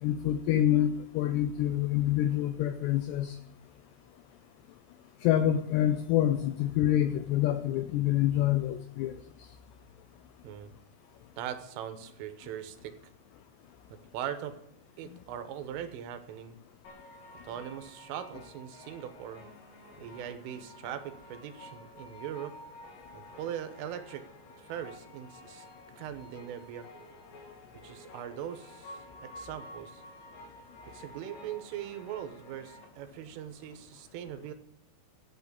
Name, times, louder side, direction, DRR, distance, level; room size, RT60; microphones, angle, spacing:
voice 1, 0.0-3.4 5.2-9.1, left 12 dB, 85° left, 11 dB, 2.4 m, -27 dB
voice 2, 11.4-13.0 13.9-14.6 15.0-16.6 17.4-19.5 20.0-22.6 23.1-24.3 24.6-25.7 26.0-26.9 27.8-30.0 30.9-34.5, right 10 dB, 85° right, 9 dB, 3.7 m, -40 dB
sound 1, 16.8-32.9, left 1 dB, 65° left, 4.9 m, -51 dB
13.5 x 8.3 x 8.3 m, 0.76 s
omnidirectional pair, 5.6 m